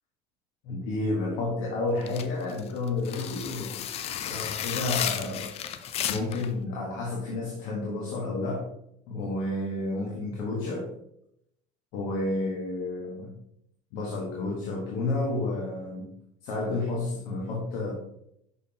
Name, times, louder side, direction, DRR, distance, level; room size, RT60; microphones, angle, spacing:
voice 1, 0.6-3.8 4.2-5.5 6.1-8.7 9.1-10.9 11.9-13.3 13.9-16.1 16.4-17.9, left 2 dB, 70° left, -3 dB, 1.5 m, -31 dB
sound 1, 2.0-6.5, left 10 dB, 45° left, 0.5 m, -33 dB
6.1 x 5.8 x 2.9 m, 0.76 s
cardioid pair, 120°, 15 cm